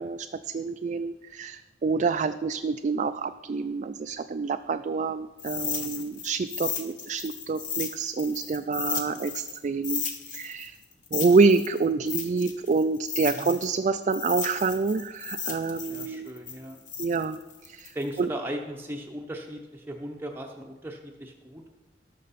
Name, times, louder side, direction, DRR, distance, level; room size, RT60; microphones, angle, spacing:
voice 1, 0.0-10.8 11.1-16.4 17.0-18.3, right 4 dB, 40° right, 8 dB, 0.3 m, -27 dB
sound 1, 5.4-9.6 9.8-13.8 14.1-18.2, left 7 dB, 45° left, 1.4 m, -34 dB
voice 2, 15.9-17.2 17.9-21.7, equal, 15° right, 1 dB, 0.7 m, -38 dB
18.0 x 6.5 x 4.1 m, 1.2 s
head